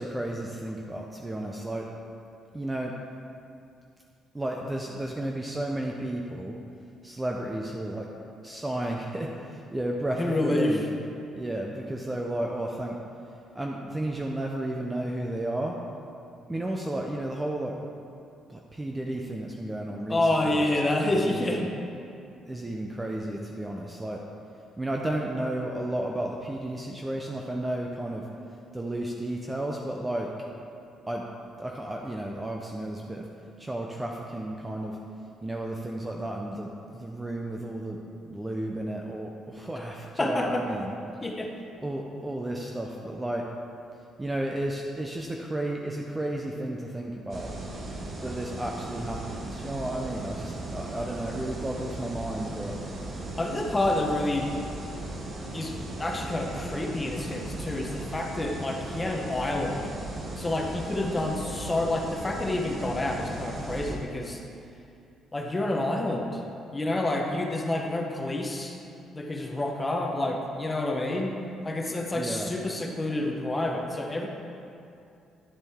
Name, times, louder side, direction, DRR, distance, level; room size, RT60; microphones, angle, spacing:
voice 1, 0.0-1.9 2.5-2.9 4.3-6.6 7.0-8.1 8.4-10.8 11.3-13.0 13.5-15.8 16.5-17.8 18.5-20.8 21.1-21.7 22.5-24.2 24.8-28.3 28.7-30.3 31.1-31.3 31.6-33.3 33.6-35.0 35.4-38.0 38.2-41.1 41.8-43.5 44.2-47.5 48.2-52.8 72.1-72.5, right 1 dB, 10° right, 0 dB, 0.5 m, -33 dB
voice 2, 10.2-10.8 20.1-21.7 40.2-40.6 41.2-41.5 53.4-54.5 55.5-59.9 60.4-64.4 65.3-66.4 66.7-68.8 69.1-71.4 71.6-74.3, left 1 dB, 15° left, 1 dB, 0.8 m, -28 dB
sound 1, 47.3-64.0, right 2 dB, 35° right, 1.0 m, -37 dB
9.8 x 7.1 x 3.5 m, 2.6 s
cardioid pair, 160°, 0 cm